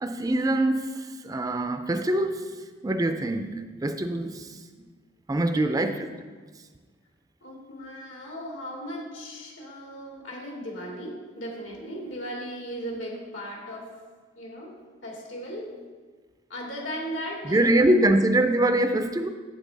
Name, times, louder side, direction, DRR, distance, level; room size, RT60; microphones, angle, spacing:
voice 1, 0.0-2.5 2.8-4.6 5.3-6.0 17.4-19.3, right 1 dB, 20° right, 8 dB, 0.4 m, -24 dB
voice 2, 5.5-5.9 7.4-13.9 14.4-14.8 15.0-15.7 16.5-18.0, equal, 85° left, -2 dB, 2.5 m, -37 dB
8.4 x 8.2 x 4.0 m, 1.4 s
head